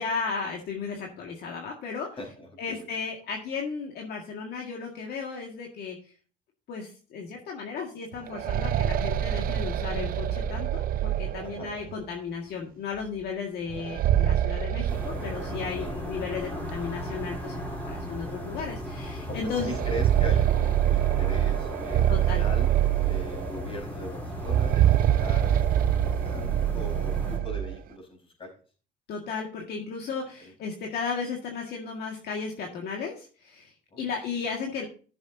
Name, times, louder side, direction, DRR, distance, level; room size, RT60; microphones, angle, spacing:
voice 1, 0.0-2.1 2.6-6.0 6.7-19.7 22.1-22.4 29.1-33.7 34.0-34.9, left 5 dB, 70° left, 0 dB, 1.9 m, -35 dB
voice 2, 2.2-2.9 11.4-11.7 15.8-16.0 19.3-22.7 23.0-25.5 26.2-28.5 30.4-30.5 33.9-34.0, left 1 dB, 35° left, 2 dB, 4.6 m, -40 dB
sound 1, 8.1-11.9 13.7-15.9 16.2-16.3 17.2-17.3 17.8-17.9 19.5-23.7 24.4-27.8, right 11 dB, 60° right, 0.6 m, -25 dB
sound 2, 14.9-27.4, left 1 dB, 10° left, 3.7 m, -36 dB
14.0 x 7.0 x 2.8 m, 0.38 s
cardioid pair, 110°, 17 cm